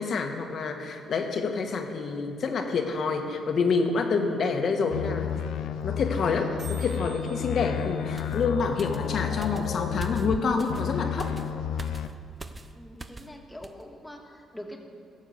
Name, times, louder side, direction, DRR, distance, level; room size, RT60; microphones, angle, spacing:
voice 1, 0.0-5.3 5.8-11.3, left 4 dB, 60° left, 4 dB, 1.5 m, -27 dB
sound 1, 4.5-4.6 4.8-4.9 5.0-5.3 5.5-5.6 5.8-6.1 6.3-6.4 6.6-10.6, right 6 dB, 50° right, 4.0 m, -52 dB
sound 2, 4.9-10.4 10.7-12.1, left 9 dB, 80° left, 0.5 m, -31 dB
sound 3, 8.2-13.4 13.6-13.8, right 3 dB, 25° right, 0.8 m, -44 dB
voice 2, 12.7-14.8, equal, 10° left, 1 dB, 1.9 m, -43 dB
17.0 x 7.3 x 7.0 m, 2.3 s
cardioid pair, 90°, 0 cm